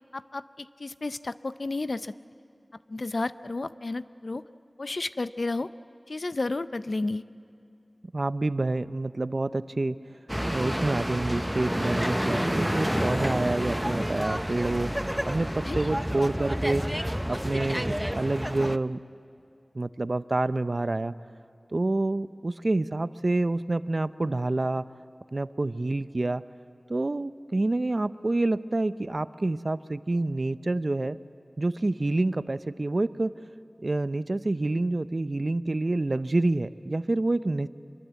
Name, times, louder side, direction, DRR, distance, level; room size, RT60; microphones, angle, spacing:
voice 1, 0.1-2.1 2.9-4.4 4.8-5.7 6.1-7.2 15.7-15.9, left 2 dB, 70° left, 13 dB, 0.6 m, -32 dB
voice 2, 8.1-10.0 10.3-14.9 15.2-16.9 17.3-19.0 19.7-21.1 21.7-24.9 25.3-26.4 26.9-31.2 31.6-33.3 33.8-37.7, right 2 dB, 55° right, 14 dB, 0.6 m, -27 dB
sound 1, 10.3-18.8, equal, 5° right, 0.6 m, -29 dB
25.5 x 22.5 x 8.2 m, 2.5 s
wide cardioid pair, 55°, 0 cm